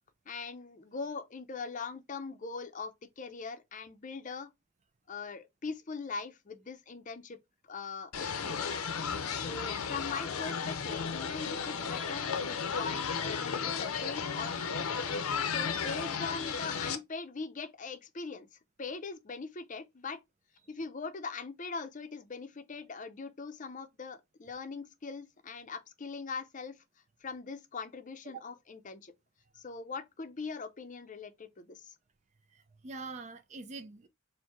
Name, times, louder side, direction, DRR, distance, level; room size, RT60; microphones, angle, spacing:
voice 1, 0.3-4.5 5.1-7.4 7.7-8.9 9.3-15.0 15.4-20.2 20.7-26.8 27.2-29.1 29.5-31.9, left 4 dB, 35° left, 0.6 m, -41 dB
sound 1, 8.1-17.0, left 6 dB, 85° left, 0.7 m, -34 dB
voice 2, 32.5-34.1, right 3 dB, 30° right, 0.4 m, -44 dB
4.4 x 2.2 x 4.5 m
head